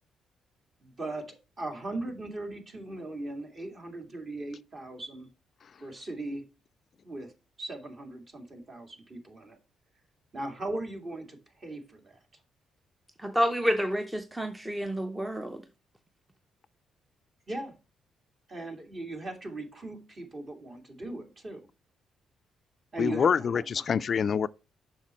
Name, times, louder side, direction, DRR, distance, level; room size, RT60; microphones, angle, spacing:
voice 1, 0.8-5.3 5.8-6.4 7.0-7.3 7.6-9.6 10.3-12.2 17.5-17.8 18.5-21.7 22.9-23.8, right 2 dB, 40° right, 2.3 m, -39 dB
voice 2, 13.2-15.6, equal, 10° right, 0.7 m, -29 dB
voice 3, 23.0-24.5, left 7 dB, 50° left, 0.3 m, -26 dB
7.3 x 5.8 x 4.3 m
cardioid pair, 90°, 0 cm